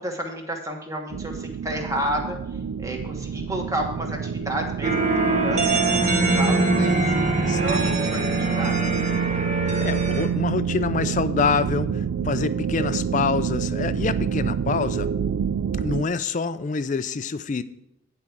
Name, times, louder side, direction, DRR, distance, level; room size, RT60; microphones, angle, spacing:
voice 1, 0.0-8.9, equal, 15° right, 2 dB, 1.3 m, -32 dB
sound 1, 1.1-16.0, right 7 dB, 75° right, 0.3 m, -27 dB
sound 2, 4.8-10.3, right 2 dB, 35° right, 1.2 m, -23 dB
voice 2, 7.5-8.0 9.8-15.1 15.8-17.6, left 4 dB, 35° left, 14 dB, 0.4 m, -26 dB
9.8 x 4.6 x 7.1 m, 0.82 s
head